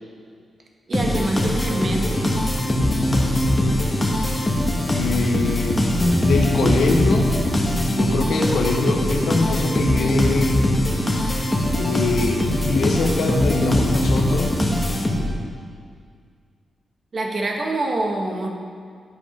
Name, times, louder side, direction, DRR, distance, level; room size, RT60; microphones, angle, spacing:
sound 1, 0.9-15.5, left 1 dB, 20° left, 1.4 m, -21 dB
voice 1, 0.9-2.2 17.1-18.5, right 2 dB, 45° right, 1 dB, 1.3 m, -25 dB
voice 2, 4.8-5.9 6.2-7.3 7.6-10.6 11.8-14.5, left 3 dB, 85° left, 1 dB, 1.2 m, -23 dB
10.5 x 6.0 x 5.1 m, 2.1 s
cardioid pair, 95°, 0 cm